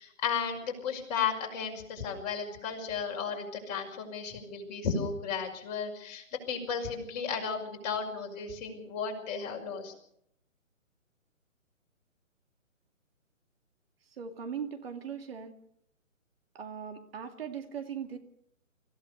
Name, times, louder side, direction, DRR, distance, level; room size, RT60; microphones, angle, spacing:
voice 1, 0.0-9.9, left 6 dB, 30° left, 2 dB, 5.6 m, -34 dB
voice 2, 14.1-15.5 16.5-18.2, right 7 dB, 45° right, 6 dB, 2.4 m, -39 dB
26.0 x 16.0 x 6.7 m, 0.72 s
figure-of-eight pair, 150°, 41 cm